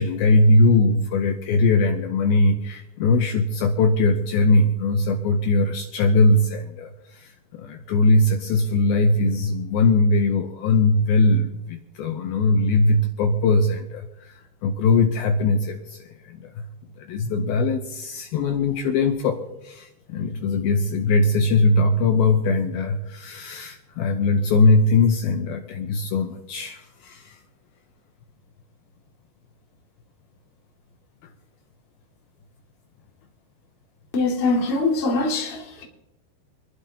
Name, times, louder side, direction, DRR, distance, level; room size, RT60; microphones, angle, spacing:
voice 1, 0.0-16.7 17.0-27.4, left 2 dB, 75° left, 2.3 m, -21 dB
voice 2, 34.1-35.8, left 3 dB, 25° left, 1.2 m, -23 dB
27.0 x 12.0 x 2.9 m
omnidirectional pair, 5.1 m